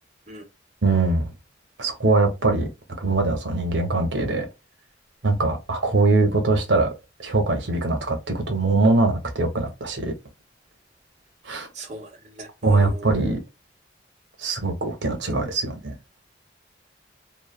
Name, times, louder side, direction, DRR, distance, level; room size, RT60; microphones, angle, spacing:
voice 1, 0.8-1.3 1.8-2.7 3.0-4.5 5.2-6.9 7.2-10.1 11.5-11.7 12.6-13.4 14.4-15.9, right 3 dB, 80° right, 0.8 m, -22 dB
voice 2, 11.7-12.1 12.4-13.1, right 1 dB, 40° right, 0.9 m, -38 dB
3.1 x 2.1 x 2.3 m
head